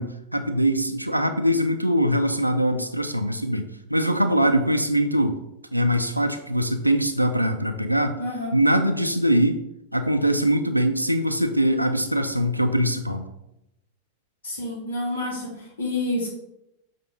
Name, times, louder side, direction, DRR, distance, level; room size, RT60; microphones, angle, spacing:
voice 1, 0.0-5.4 5.7-8.2 8.5-9.6 9.9-13.3, equal, 90° right, 5 dB, 0.5 m, -22 dB
voice 2, 8.2-8.5 14.4-16.3, left 2 dB, 65° left, -2 dB, 2.7 m, -29 dB
6.7 x 3.7 x 5.4 m, 0.85 s
figure-of-eight pair, 90°, 0 cm